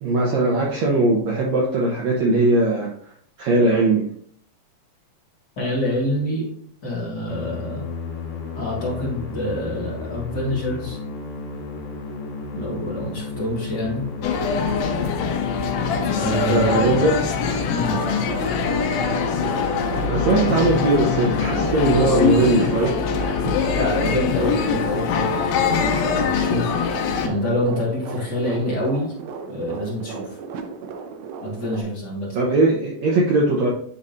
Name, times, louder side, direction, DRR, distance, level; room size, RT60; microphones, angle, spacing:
voice 1, 0.0-2.9 3.4-4.1 16.4-17.3 20.1-23.0 32.3-33.7, right 2 dB, 75° right, -2 dB, 1.6 m, -19 dB
voice 2, 5.6-6.5 6.8-7.8 8.5-11.0 12.5-14.0 16.1-17.1 17.7-18.0 23.7-26.8 27.2-29.1 29.5-30.4 31.4-32.4, left 1 dB, 35° left, -5 dB, 1.8 m, -26 dB
Musical instrument, 7.3-24.4, left 5 dB, 65° left, 3.0 m, -33 dB
sound 1, 14.2-27.3, left 6 dB, 85° left, 2.7 m, -23 dB
sound 2, 15.7-31.8, right 5 dB, 90° right, 2.6 m, -34 dB
10.5 x 4.2 x 2.6 m, 0.63 s
omnidirectional pair, 4.2 m